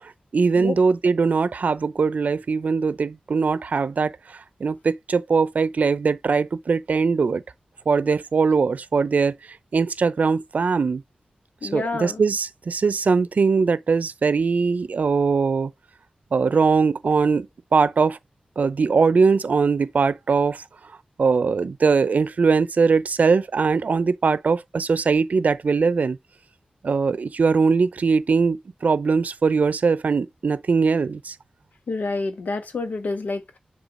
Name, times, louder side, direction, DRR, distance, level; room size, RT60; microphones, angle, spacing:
voice 1, 0.0-7.4 7.9-9.4 9.7-11.0 11.6-15.7 16.3-18.2 18.6-20.6 21.2-26.2 26.8-31.4, right 5 dB, 70° right, 0.5 m, -21 dB
voice 2, 11.6-12.2 31.9-33.6, left 3 dB, 90° left, 1.4 m, -28 dB
7.2 x 3.7 x 3.8 m
wide cardioid pair, 100°, 3 cm